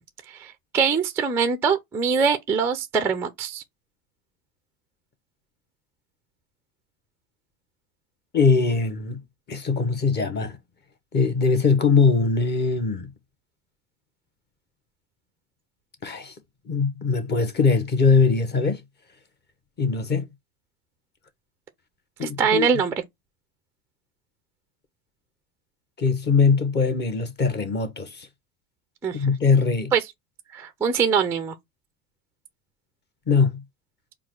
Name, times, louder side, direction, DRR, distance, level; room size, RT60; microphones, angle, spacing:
voice 1, 0.4-3.6 22.2-22.9 29.0-29.3 29.9-30.0 30.5-31.5, right 6 dB, 5° right, 0.3 m, -23 dB
voice 2, 8.3-9.2 9.5-10.6 11.1-13.1 16.0-16.3 16.7-18.8 19.8-20.2 22.2-22.7 26.0-28.1 29.1-29.9 33.3-33.6, left 4 dB, 25° left, 0.9 m, -21 dB
4.5 x 2.3 x 3.7 m
hypercardioid pair, 100°, 44 cm